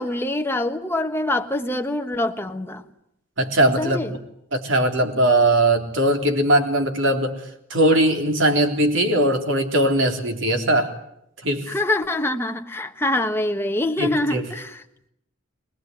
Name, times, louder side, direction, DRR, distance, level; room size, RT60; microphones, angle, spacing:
voice 1, 0.0-2.8 3.8-4.1 11.7-14.8, left 1 dB, 10° left, 1.3 m, -25 dB
voice 2, 3.4-4.0 4.5-7.3 7.7-10.9 11.4-11.7 14.0-14.5, right 1 dB, 70° right, 3.5 m, -20 dB
23.0 x 20.5 x 9.4 m
head